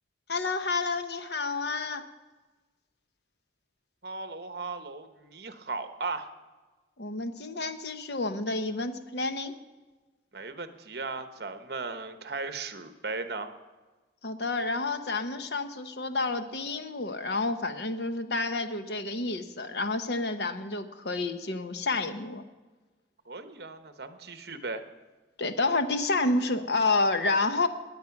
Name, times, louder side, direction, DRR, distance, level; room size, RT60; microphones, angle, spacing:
voice 1, 0.3-2.1 7.0-9.5 14.2-22.4 25.4-27.7, left 3 dB, 65° left, 9 dB, 1.0 m, -29 dB
voice 2, 4.0-6.3 10.3-13.5 23.3-24.8, right 3 dB, 55° right, 9 dB, 1.0 m, -37 dB
20.5 x 9.2 x 5.9 m, 1.3 s
head